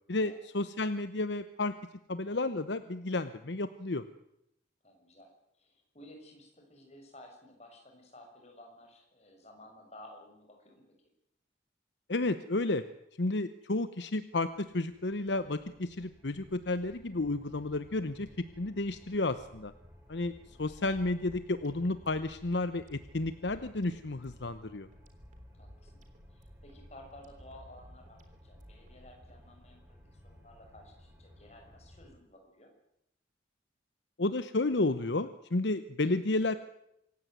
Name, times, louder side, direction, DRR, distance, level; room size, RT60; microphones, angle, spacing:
voice 1, 0.1-1.7 2.1-4.0 12.1-12.8 13.2-18.3 18.6-19.7 20.1-20.3 20.6-24.9 34.2-36.5, left 2 dB, 70° left, 12 dB, 0.9 m, -32 dB
voice 2, 4.8-5.3 5.6-10.8 20.2-20.5 25.5-26.0 26.3-32.7, left 1 dB, 35° left, 2 dB, 6.6 m, -54 dB
sound 1, 14.7-32.1, equal, 10° right, 4.4 m, -57 dB
sound 2, 20.7-29.3, equal, 40° right, 3.4 m, -56 dB
26.0 x 15.5 x 9.3 m, 0.81 s
head